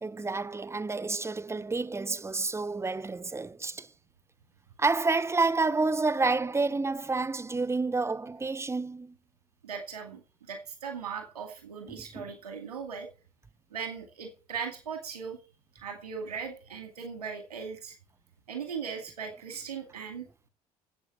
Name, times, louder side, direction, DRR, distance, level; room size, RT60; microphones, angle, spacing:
voice 1, 0.0-3.9 4.8-9.2 11.9-12.2, right 3 dB, 15° right, 0.9 m, -29 dB
voice 2, 9.6-13.1 13.7-15.4 15.7-17.9 18.5-20.3, right 6 dB, 80° right, 2.3 m, -38 dB
11.0 x 8.4 x 8.3 m
figure-of-eight pair, 55°, 20 cm